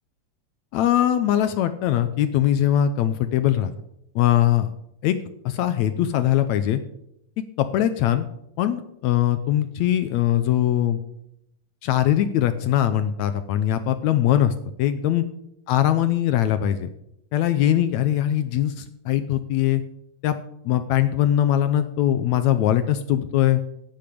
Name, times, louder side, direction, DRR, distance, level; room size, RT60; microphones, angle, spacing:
voice 1, 0.7-3.7 4.1-4.7 5.0-5.2 5.4-6.8 7.6-8.3 8.6-11.0 11.8-14.5 14.8-15.2 15.7-16.9 17.3-19.8 20.2-20.3 20.6-23.6, left 11 dB, 80° left, 10 dB, 1.7 m, -21 dB
17.5 x 8.6 x 5.1 m, 0.78 s
omnidirectional pair, 3.8 m